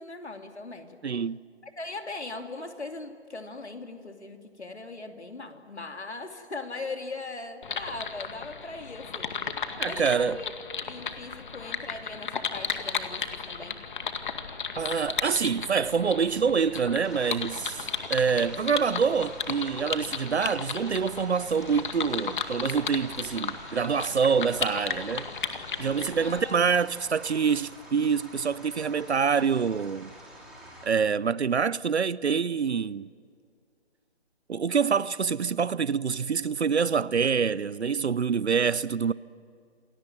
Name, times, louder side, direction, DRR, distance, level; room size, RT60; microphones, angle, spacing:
voice 1, 0.0-1.0 1.6-9.4 9.8-10.5 10.8-13.8 26.2-26.7, left 3 dB, 80° left, 3.0 m, -39 dB
voice 2, 1.0-1.4 9.8-10.4 14.8-25.3 25.8-30.1 30.8-33.1 34.5-39.1, right 6 dB, 80° right, 0.7 m, -26 dB
sound 1, 7.6-26.4, left 6 dB, 50° left, 2.1 m, -35 dB
sound 2, 17.0-30.9, equal, ahead, 5.0 m, -48 dB
29.0 x 22.0 x 9.4 m
figure-of-eight pair, 145°, 33 cm